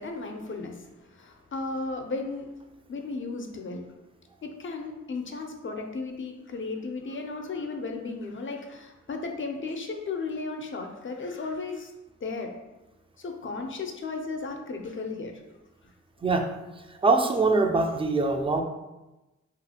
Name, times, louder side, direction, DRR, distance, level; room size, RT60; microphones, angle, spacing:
voice 1, 0.0-2.5 2.9-4.0 4.4-11.9 12.2-12.5 13.2-15.4, left 3 dB, 45° left, 3 dB, 0.5 m, -35 dB
voice 2, 16.9-18.6, right 3 dB, 20° right, 4 dB, 0.4 m, -23 dB
2.7 x 2.5 x 2.8 m, 1.0 s
cardioid pair, 45°, 30 cm